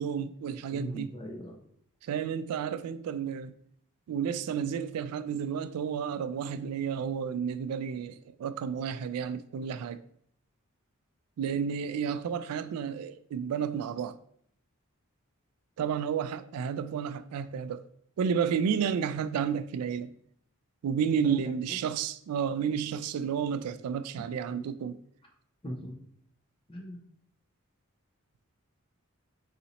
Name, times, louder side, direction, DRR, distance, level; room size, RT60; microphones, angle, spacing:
voice 1, 0.0-1.1 2.0-3.5 4.1-10.0 11.4-14.2 15.8-17.9 18.2-20.1 20.8-25.0, right 7 dB, 85° right, 0.3 m, -31 dB
voice 2, 0.7-1.6 21.2-21.8 24.5-24.7 25.6-25.9 26.7-27.0, equal, 25° left, 0.8 m, -40 dB
4.0 x 2.9 x 4.0 m
head